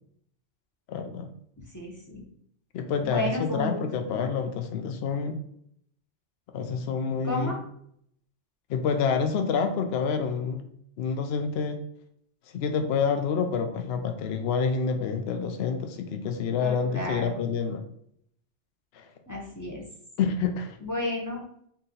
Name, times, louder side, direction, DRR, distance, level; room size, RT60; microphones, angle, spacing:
voice 1, 0.9-1.3 2.7-5.4 6.5-7.5 8.7-10.6 11.0-11.8 12.5-17.8 18.9-19.0 20.2-20.8, left 5 dB, 65° left, 6 dB, 0.7 m, -28 dB
voice 2, 1.7-2.2 3.0-4.1 7.2-7.6 16.6-17.3 19.3-19.8 20.8-21.4, left 1 dB, 15° left, -3 dB, 0.7 m, -32 dB
4.1 x 2.8 x 3.8 m, 0.68 s
omnidirectional pair, 1.3 m